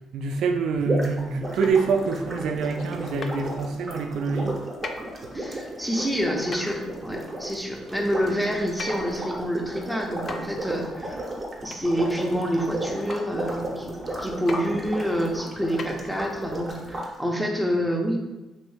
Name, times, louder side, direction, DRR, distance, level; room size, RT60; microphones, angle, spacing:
voice 1, 0.1-4.6, right 4 dB, 75° right, 4 dB, 0.4 m, -25 dB
sound 1, 0.8-17.1, right 1 dB, 30° right, 0.8 m, -34 dB
sound 2, 1.6-1.9 3.2-3.4 4.8-5.1 6.5-6.8 8.8-9.1 10.3-10.6 11.7-11.9 13.1-13.3 14.5-14.7 15.8-15.9, left 3 dB, 50° left, 0.3 m, -36 dB
voice 2, 5.3-11.3 11.6-13.9 14.2-18.2, equal, ahead, 0 dB, 0.6 m, -27 dB
3.0 x 2.7 x 3.3 m, 1.1 s
cardioid pair, 80°, 0 cm